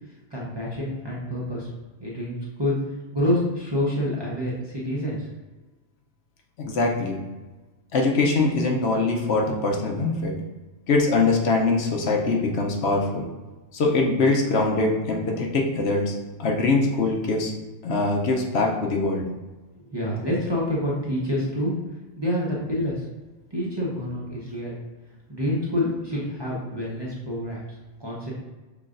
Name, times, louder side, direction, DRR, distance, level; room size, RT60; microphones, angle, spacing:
voice 1, 0.3-1.7 2.0-2.8 3.1-5.3 19.9-21.7 22.2-23.0 23.5-24.8 25.3-27.6 28.0-28.3, left 1 dB, 25° right, -6 dB, 0.8 m, -27 dB
voice 2, 6.6-7.2 7.9-10.4 10.9-13.3 13.7-17.5 17.8-19.3, left 3 dB, 65° left, 1 dB, 0.9 m, -23 dB
5.8 x 3.3 x 2.5 m, 1.2 s
omnidirectional pair, 1.2 m